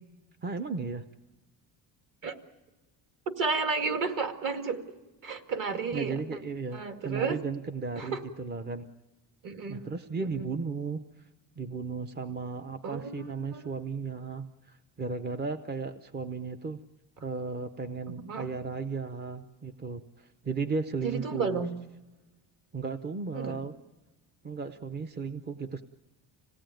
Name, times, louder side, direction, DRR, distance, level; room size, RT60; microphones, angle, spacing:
voice 1, 0.4-1.0 5.9-8.9 9.7-11.0 11.6-16.8 17.2-21.6 22.7-23.7 24.4-25.8, right 4 dB, 20° right, 8 dB, 0.7 m, -35 dB
voice 2, 3.3-4.9 5.2-6.4 6.7-7.4 8.0-8.2 9.4-9.9 10.2-10.5 12.8-13.7 18.1-18.5 21.0-21.7 23.3-23.6, right 4 dB, 45° right, 6 dB, 2.2 m, -32 dB
26.5 x 18.0 x 9.1 m, 1.2 s
cardioid pair, 140°, 45 cm